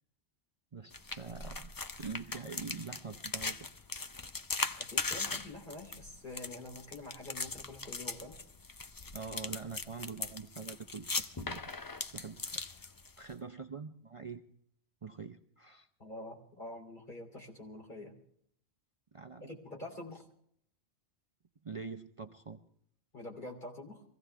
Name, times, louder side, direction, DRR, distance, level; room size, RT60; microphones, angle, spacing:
voice 1, 0.7-1.7 2.0-3.6 9.1-11.7 12.1-12.9 13.2-14.4 15.0-15.9 19.1-19.5 21.6-22.6, right 5 dB, 35° right, 5 dB, 0.6 m, -44 dB
sound 1, 0.9-13.3, left 3 dB, 25° left, 0.5 m, -39 dB
voice 2, 4.8-8.4 16.0-18.1 19.4-20.3 23.1-24.0, left 2 dB, 50° left, 0 dB, 3.4 m, -46 dB
24.0 x 16.0 x 3.5 m, 0.66 s
omnidirectional pair, 1.0 m